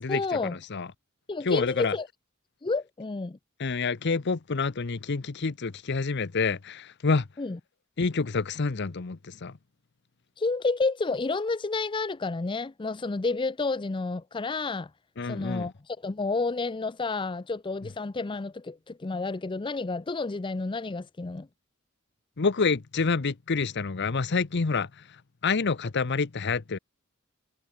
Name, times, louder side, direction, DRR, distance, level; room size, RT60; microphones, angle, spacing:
voice 1, 0.1-0.6 1.3-2.1 2.6-3.4 7.4-7.6 10.4-14.9 15.2-21.5, left 3 dB, 25° left, 0.5 m, -30 dB
voice 2, 1.4-1.9 3.6-7.3 8.0-9.5 15.2-15.7 22.4-24.9 25.4-26.8, left 4 dB, 55° left, 0.8 m, -27 dB
head